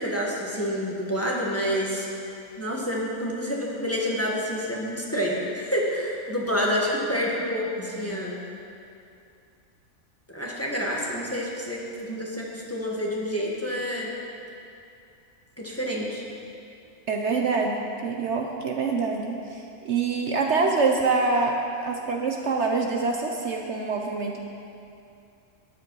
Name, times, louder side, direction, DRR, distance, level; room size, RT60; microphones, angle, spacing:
voice 1, 0.0-2.1 2.6-8.4 10.3-14.1 15.6-16.2, equal, 10° left, -4 dB, 1.5 m, -28 dB
voice 2, 17.1-24.4, right 4 dB, 60° right, 2 dB, 1.0 m, -25 dB
13.0 x 10.5 x 4.8 m, 2.6 s
omnidirectional pair, 1.4 m